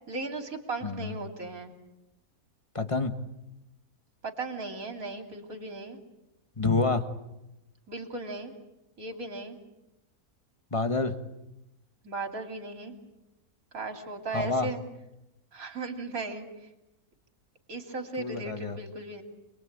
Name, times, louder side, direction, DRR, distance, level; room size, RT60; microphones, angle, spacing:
voice 1, 0.1-1.7 4.2-6.0 7.9-8.5 9.0-9.6 12.0-13.0 13.7-14.8 15.5-16.5 17.7-19.2, right 3 dB, 60° right, 5 dB, 3.4 m, -36 dB
voice 2, 0.8-1.1 2.7-3.1 6.6-7.0 10.7-11.1 14.3-14.7 18.2-18.8, left 3 dB, 20° left, 8 dB, 1.5 m, -28 dB
28.0 x 22.0 x 8.8 m, 0.94 s
omnidirectional pair, 1.7 m